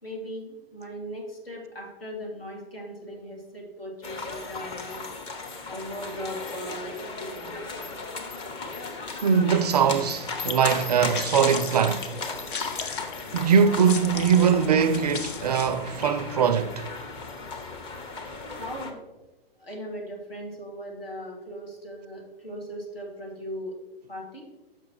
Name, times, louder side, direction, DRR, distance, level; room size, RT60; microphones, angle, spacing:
voice 1, 0.0-5.0 5.7-7.9 18.5-19.0 19.6-23.8 24.1-24.5, equal, 75° left, 2.7 m, -38 dB
sound 1, 4.0-18.9, left 4 dB, 15° left, 0.7 m, -36 dB
voice 2, 9.2-12.1 13.3-16.9, right 7 dB, 45° right, 0.4 m, -22 dB
sound 2, 9.9-16.1, left 5 dB, 60° left, 0.9 m, -37 dB
6.8 x 5.8 x 4.8 m
figure-of-eight pair, 115°, 30 cm